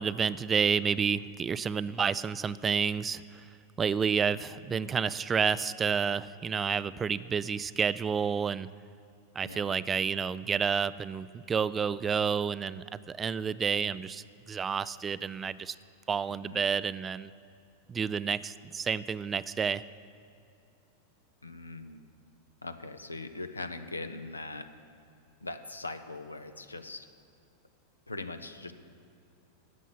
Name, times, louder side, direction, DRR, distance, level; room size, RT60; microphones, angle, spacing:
voice 1, 0.0-3.4 3.8-8.7 9.4-15.8 16.1-17.3 17.9-19.8, right 6 dB, 20° right, 17 dB, 0.3 m, -30 dB
voice 2, 21.4-22.0 22.6-24.7 25.4-27.1 28.1-28.7, left 2 dB, 80° left, 9 dB, 0.7 m, -41 dB
13.0 x 8.3 x 7.2 m, 2.7 s
figure-of-eight pair, 90°, 0 cm